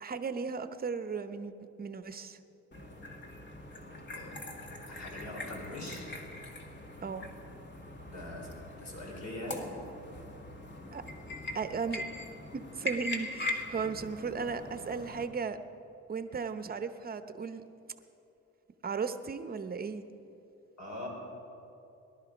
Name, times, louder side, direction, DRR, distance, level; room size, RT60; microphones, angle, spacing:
voice 1, 0.0-2.4 7.0-7.3 10.9-11.0 11.5-12.0 12.5-15.6 16.1-17.6 18.8-20.0, right 5 dB, 30° right, 10 dB, 0.8 m, -36 dB
sound 1, 2.7-15.2, left 1 dB, 35° left, 1.8 m, -42 dB
voice 2, 4.9-6.1 8.1-9.7 20.8-21.1, left 1 dB, 65° left, -1 dB, 4.4 m, -42 dB
18.5 x 11.5 x 5.1 m, 2.9 s
cardioid pair, 90°, 30 cm